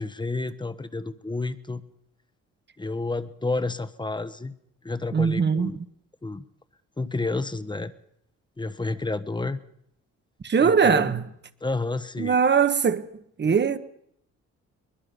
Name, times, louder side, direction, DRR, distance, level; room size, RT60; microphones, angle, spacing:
voice 1, 0.0-1.8 2.8-4.5 4.8-5.8 6.2-6.4 7.0-7.9 8.6-9.6 10.6-11.1 11.6-12.4, left 3 dB, 15° left, 1.2 m, -30 dB
voice 2, 5.1-5.8 10.4-11.3 12.2-13.1 13.4-13.8, right 6 dB, 35° right, 1.3 m, -21 dB
23.0 x 21.0 x 5.3 m
cardioid pair, 90°, 30 cm